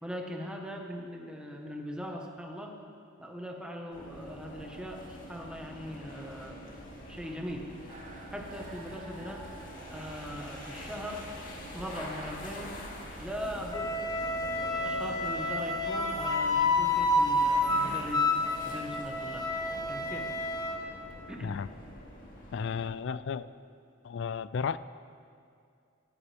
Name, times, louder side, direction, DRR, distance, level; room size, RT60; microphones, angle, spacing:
voice 1, 0.0-2.7 3.2-6.8 7.1-7.6 8.3-9.4 9.9-11.2 11.7-12.8 13.2-13.9 14.8-18.3 18.6-19.4 19.9-20.3 21.3-21.6, equal, 5° right, 0 dB, 1.4 m, -40 dB
sound 1, 3.9-22.9, equal, 45° left, 2.3 m, -46 dB
sound 2, 7.9-18.0, right 2 dB, 40° right, 1.4 m, -48 dB
Wind instrument woodwind instrument, 13.7-20.8, left 2 dB, 20° left, 1.2 m, -29 dB
voice 2, 22.5-23.5 24.0-24.8, left 6 dB, 65° left, 16 dB, 0.4 m, -33 dB
22.0 x 14.0 x 3.5 m, 2.4 s
head